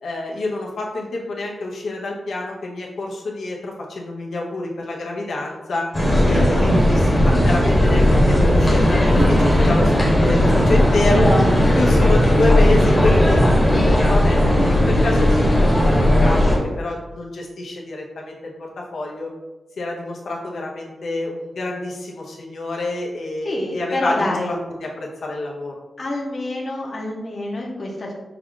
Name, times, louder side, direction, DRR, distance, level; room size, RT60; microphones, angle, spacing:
voice 1, 0.0-5.9 6.2-9.9 10.2-13.4 13.8-19.3 19.8-25.7, left 2 dB, 80° left, -2 dB, 0.8 m, -27 dB
sound 1, 5.9-16.6, left 1 dB, 10° left, 1.0 m, -16 dB
voice 2, 23.4-24.5 26.0-28.1, left 1 dB, 35° left, -2 dB, 0.8 m, -27 dB
5.8 x 2.4 x 3.7 m, 1.1 s
wide cardioid pair, 175°, 0 cm